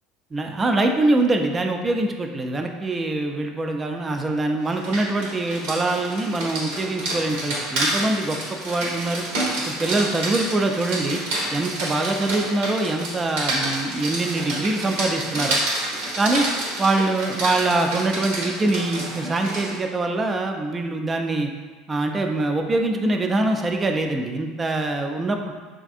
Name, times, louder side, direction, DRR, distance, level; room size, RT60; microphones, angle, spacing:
voice 1, 0.3-9.2 9.6-11.2 11.5-15.6 16.2-16.5 16.8-21.5 21.9-25.5, right 2 dB, 20° right, 4 dB, 0.3 m, -24 dB
Rain, 4.6-19.8, right 1 dB, 80° right, 0.8 m, -29 dB
3.3 x 2.4 x 2.5 m, 1.4 s
supercardioid pair, 110°, 0 cm